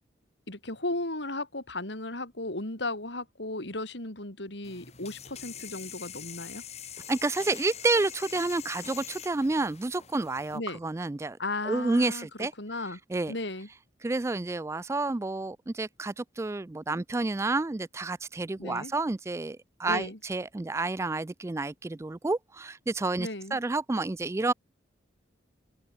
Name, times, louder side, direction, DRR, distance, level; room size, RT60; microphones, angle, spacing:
voice 1, 0.5-6.6 10.5-10.8 11.4-13.0 13.3-13.7 18.6-18.9 19.9-20.2 23.2-23.6, left 2 dB, 70° left, 4.6 m, -35 dB
sound 1, 4.6-10.6, left 9 dB, 35° left, 4.6 m, -44 dB
voice 2, 7.1-11.4 11.7-12.5 13.1-13.3 14.0-24.5, right 3 dB, 15° right, 0.3 m, -30 dB
open air
head